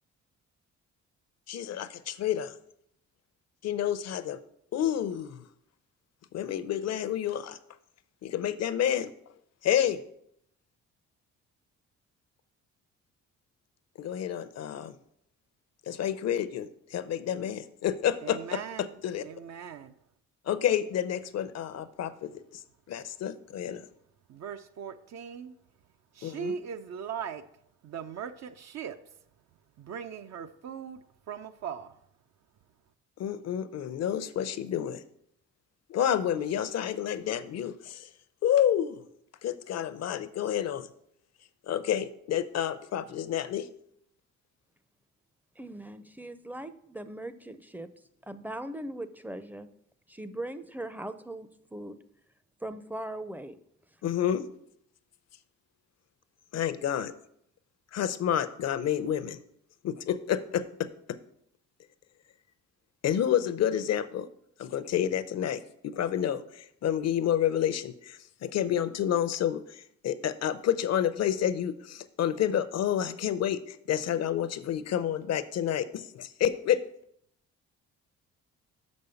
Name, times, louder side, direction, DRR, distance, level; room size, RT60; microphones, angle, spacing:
voice 1, 1.5-2.5 3.6-4.4 4.7-5.4 6.3-7.6 8.2-9.1 9.6-10.0 14.0-14.9 15.9-19.2 20.5-22.4 22.9-23.8 26.2-26.5 33.2-35.0 35.9-38.1 38.4-39.0 39.4-40.9 41.7-43.7 54.0-54.5 56.5-57.1 57.9-59.4 59.8-61.2 63.0-64.3 64.6-76.8, left 10 dB, 60° left, 13 dB, 0.6 m, -29 dB
voice 2, 18.2-18.9 19.2-19.9 24.3-25.5 26.1-27.4 27.8-29.0 29.8-31.0 31.3-31.9, right 7 dB, 60° right, 8 dB, 0.6 m, -39 dB
voice 3, 45.6-47.9 48.2-49.7 50.1-52.0 52.6-53.6, right 1 dB, 5° right, 12 dB, 0.5 m, -39 dB
6.2 x 5.3 x 6.9 m, 0.72 s
cardioid pair, 90°, 30 cm